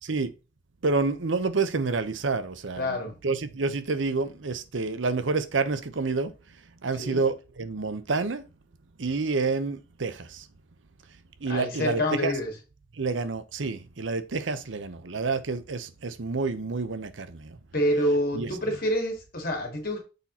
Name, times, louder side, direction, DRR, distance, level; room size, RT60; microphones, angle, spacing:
voice 1, 0.0-0.3 0.8-3.0 3.2-6.3 6.8-8.4 9.0-10.5 11.4-12.3 13.0-17.6 18.3-18.8, right 4 dB, 80° right, 0.7 m, -28 dB
voice 2, 2.8-3.1 7.0-7.2 11.5-12.5 17.7-20.0, equal, 50° left, 2.5 m, -27 dB
6.7 x 4.3 x 4.0 m
head